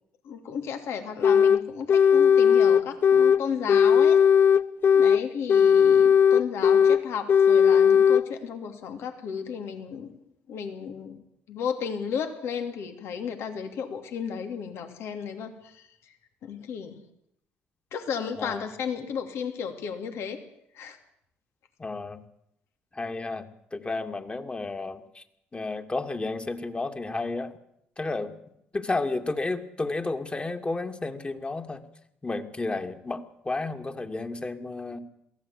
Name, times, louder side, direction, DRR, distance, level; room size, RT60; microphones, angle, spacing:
voice 1, 0.2-4.2 4.9-10.2 10.5-11.2 11.5-16.1 16.4-17.0 17.9-20.4 20.7-21.0, left 7 dB, 65° left, 6 dB, 2.8 m, -34 dB
sound 1, 1.2-1.6 1.9-3.4 3.7-5.2 5.5-7.0 7.3-8.2, left 7 dB, 50° left, 0.8 m, -18 dB
voice 2, 18.3-18.7 21.8-22.2 22.9-23.5 23.7-25.2 25.5-27.5 28.0-28.3 28.7-31.8 32.2-35.0, left 3 dB, 25° left, 6 dB, 2.7 m, -32 dB
22.5 x 16.0 x 8.5 m, 0.75 s
hypercardioid pair, 55°, 5 cm